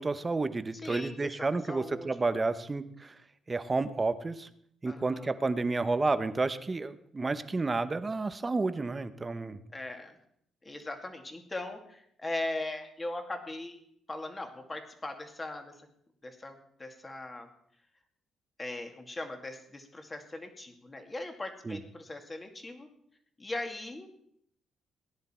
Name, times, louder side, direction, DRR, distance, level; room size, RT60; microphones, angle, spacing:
voice 1, 0.0-3.2 3.5-4.5 4.8-9.6 21.6-21.8, right 3 dB, 25° right, 12 dB, 0.9 m, -31 dB
voice 2, 0.8-2.1 4.9-5.3 9.7-10.1 10.6-13.8 14.1-15.7 16.2-17.5 18.6-22.9 23.4-24.1, left 2 dB, 20° left, 5 dB, 2.3 m, -39 dB
18.0 x 10.5 x 4.5 m, 0.69 s
cardioid pair, 90°, 0 cm